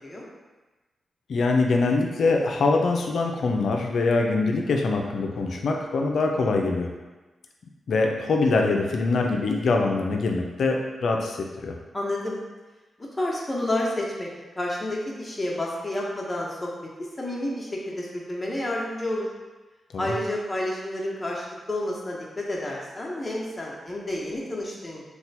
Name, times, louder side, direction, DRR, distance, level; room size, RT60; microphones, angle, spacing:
voice 1, 1.3-6.9 7.9-11.4 11.6-11.7 19.9-20.1, left 3 dB, 75° left, 2 dB, 0.4 m, -23 dB
voice 2, 11.9-12.4 13.2-14.3 14.5-16.7 17.2-19.3 20.0-25.1, left 1 dB, 25° left, -3 dB, 0.9 m, -30 dB
2.9 x 2.2 x 4.1 m, 1.2 s
cardioid pair, 50°, 0 cm